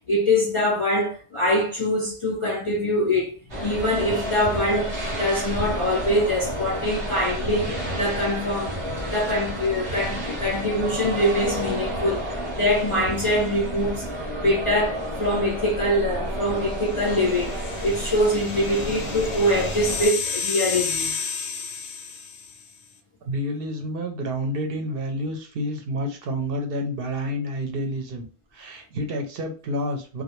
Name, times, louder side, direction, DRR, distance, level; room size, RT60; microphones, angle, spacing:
voice 1, 0.1-12.3 12.6-21.2, left 1 dB, 45° left, 0.4 m, -24 dB
sound 1, 3.5-20.1, equal, 30° right, 0.9 m, -30 dB
sound 2, 16.7-22.6, left 5 dB, 90° left, 0.9 m, -32 dB
voice 2, 23.2-28.3 28.5-30.2, equal, 65° right, 0.7 m, -29 dB
2.2 x 2.0 x 2.9 m
omnidirectional pair, 1.1 m